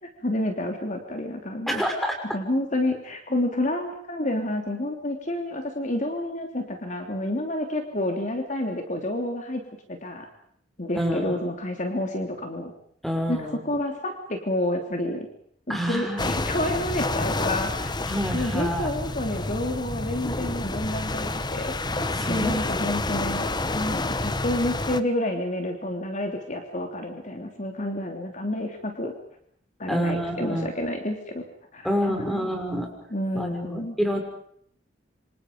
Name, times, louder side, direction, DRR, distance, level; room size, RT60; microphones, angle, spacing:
voice 1, 0.0-1.8 2.3-9.6 9.9-10.3 10.8-12.7 13.3-15.3 15.7-17.9 18.3-21.7 22.3-29.1 29.8-31.4 31.7-32.5 33.1-34.0, left 1 dB, 45° left, 4 dB, 3.2 m, -29 dB
voice 2, 1.7-2.2 10.9-11.4 13.0-13.6 15.7-16.5 18.1-18.9 22.2-23.0 29.9-30.7 31.8-32.9 33.3-34.2, equal, ahead, 3 dB, 6.2 m, -28 dB
sound 1, 16.2-25.0, left 2 dB, 25° left, 1.2 m, -29 dB
27.5 x 26.5 x 5.3 m, 0.67 s
head